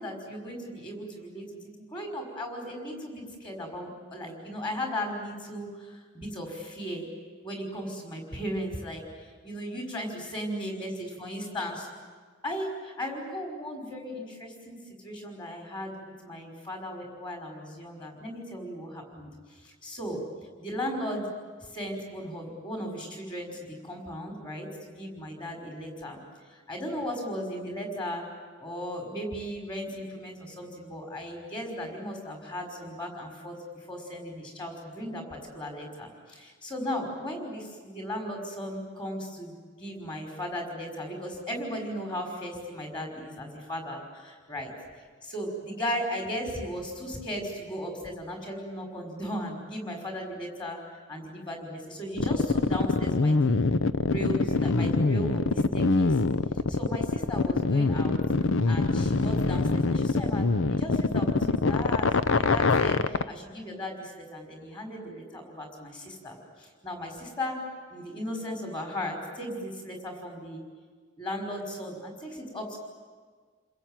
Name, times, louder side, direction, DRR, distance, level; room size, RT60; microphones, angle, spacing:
voice 1, 0.0-7.1 7.4-11.9 12.4-14.8 15.0-20.2 20.6-21.3 21.6-26.2 26.5-28.3 28.6-33.5 33.9-44.7 45.2-53.6 54.0-56.2 56.7-58.2 58.6-67.6 67.9-70.6 71.2-72.8, equal, 25° left, 2 dB, 5.4 m, -36 dB
sound 1, 52.2-63.2, left 3 dB, 85° left, 0.8 m, -24 dB
29.0 x 21.5 x 9.2 m, 1.5 s
head